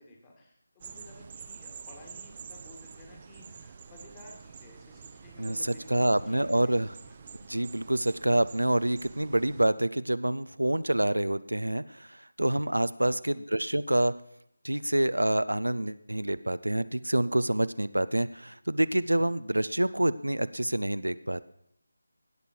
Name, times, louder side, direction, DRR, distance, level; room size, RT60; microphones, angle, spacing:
voice 1, 0.0-7.2 13.0-13.4, left 2 dB, 15° left, 0 dB, 2.1 m, -53 dB
sound 1, 0.8-9.7, right 6 dB, 25° right, 0.7 m, -48 dB
voice 2, 5.9-6.9 7.5-14.1 14.6-21.4, right 1 dB, 80° right, 15 dB, 0.5 m, -27 dB
17.5 x 6.8 x 4.5 m, 0.72 s
figure-of-eight pair, 160°, 0 cm